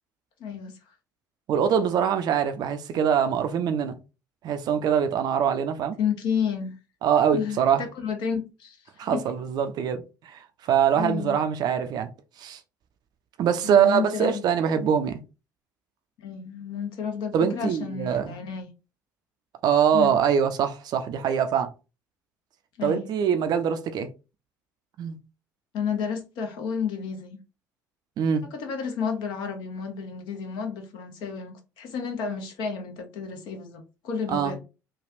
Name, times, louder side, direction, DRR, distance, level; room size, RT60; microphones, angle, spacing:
voice 1, 0.4-0.7 6.0-6.7 7.3-9.2 10.9-11.4 13.6-14.5 16.2-18.7 19.9-20.2 22.8-23.1 25.7-27.4 28.5-34.6, left 6 dB, 55° left, 0.8 m, -31 dB
voice 2, 1.5-4.0 4.4-6.0 7.0-7.8 9.0-12.1 12.4-12.6 13.4-15.2 17.3-18.4 19.6-21.7 22.8-24.1 25.0-25.2 28.2-28.4 34.3-34.5, right 8 dB, 45° right, 0.5 m, -23 dB
3.3 x 2.3 x 2.5 m
figure-of-eight pair, 55°, 9 cm